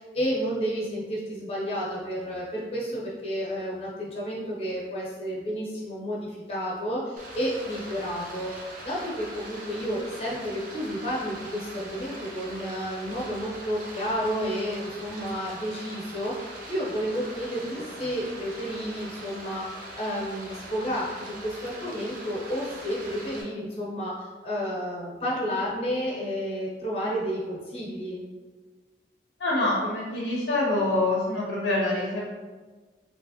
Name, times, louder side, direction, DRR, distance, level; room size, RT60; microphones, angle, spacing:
voice 1, 0.0-8.5 8.8-19.6 19.9-28.2, equal, 35° left, -5 dB, 0.8 m, -31 dB
Stream, 7.2-23.4, right 1 dB, 45° right, 0.6 m, -42 dB
voice 2, 29.4-32.3, left 2 dB, 70° left, -4 dB, 0.6 m, -26 dB
3.2 x 3.0 x 2.7 m, 1.4 s
head